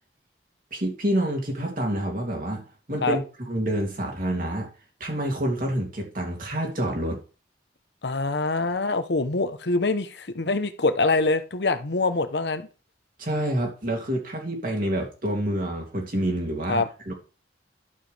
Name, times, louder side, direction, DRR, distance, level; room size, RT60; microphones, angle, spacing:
voice 1, 0.7-2.6 2.9-4.7 5.0-7.2 13.2-17.1, right 1 dB, 50° right, 1 dB, 2.8 m, -27 dB
voice 2, 8.0-12.7 16.7-16.9, left 3 dB, 70° left, 9 dB, 0.9 m, -24 dB
11.5 x 7.4 x 3.4 m, 0.34 s
head